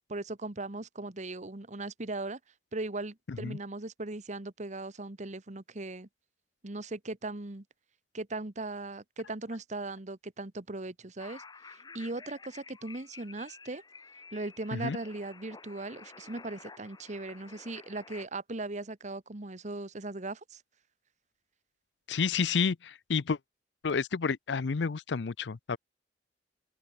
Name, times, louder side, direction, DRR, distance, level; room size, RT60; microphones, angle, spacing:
voice 1, 0.1-2.4 2.7-6.1 6.6-7.6 8.1-11.4 11.9-13.8 14.3-20.6, right 2 dB, 45° right, 1.4 m, -38 dB
sound 1, 11.2-18.3, left 4 dB, 25° left, 0.9 m, -51 dB
voice 2, 22.1-23.4 23.8-25.8, left 5 dB, 90° left, 0.6 m, -30 dB
open air
head